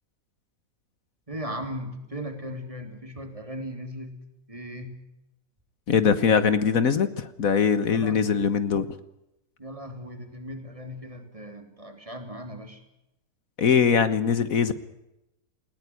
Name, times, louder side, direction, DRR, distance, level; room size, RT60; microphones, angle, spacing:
voice 1, 1.3-4.2 4.5-5.0 7.9-8.2 9.6-12.8, equal, 20° right, 6 dB, 3.3 m, -37 dB
voice 2, 5.9-8.9 13.6-14.7, left 6 dB, 70° left, 13 dB, 1.6 m, -22 dB
20.5 x 19.0 x 9.6 m, 0.88 s
omnidirectional pair, 1.6 m